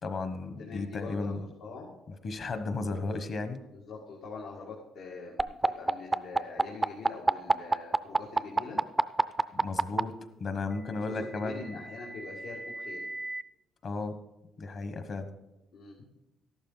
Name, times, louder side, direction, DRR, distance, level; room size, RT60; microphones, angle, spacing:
voice 1, 0.0-1.4 2.1-3.6 9.5-10.1 10.4-11.8 13.8-14.2 14.6-15.3, left 3 dB, 40° left, 9 dB, 1.2 m, -34 dB
voice 2, 0.6-1.9 3.7-8.8 10.8-13.1 15.7-16.0, left 4 dB, 85° left, -4 dB, 2.0 m, -44 dB
sound 1, 5.4-10.0 11.2-13.4, right 3 dB, 15° right, 0.4 m, -27 dB
13.5 x 11.5 x 4.0 m, 0.94 s
cardioid pair, 140°, 0 cm